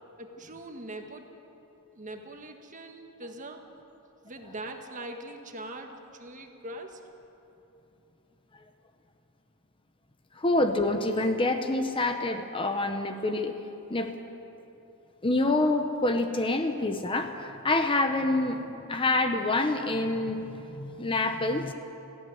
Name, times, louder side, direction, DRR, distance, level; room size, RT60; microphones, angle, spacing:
voice 1, 0.2-1.2 1.9-3.6 4.2-7.0, right 1 dB, 35° right, 4 dB, 1.7 m, -42 dB
voice 2, 10.4-13.5 13.9-14.1 15.2-21.7, left 2 dB, 25° left, 7 dB, 1.0 m, -27 dB
18.5 x 15.5 x 9.8 m, 3.0 s
head